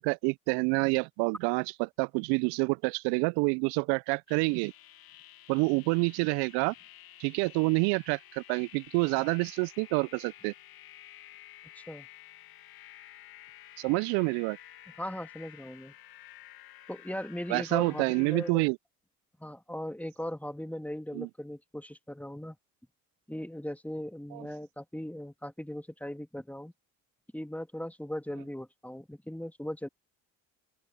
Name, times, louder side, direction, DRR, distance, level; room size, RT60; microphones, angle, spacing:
voice 1, 0.0-4.7 5.5-6.7 7.2-10.5 13.8-14.6 17.5-18.8 21.1-21.3 24.3-24.5, right 31 dB, 70° right, 0.6 m, -28 dB
sound 1, 4.3-18.5, left 13 dB, 55° left, 2.3 m, -52 dB
voice 2, 11.7-12.1 15.0-15.9 16.9-18.7 19.4-22.6 23.3-26.7 27.3-29.9, equal, 5° left, 2.9 m, -38 dB
open air
hypercardioid pair, 55°, 42 cm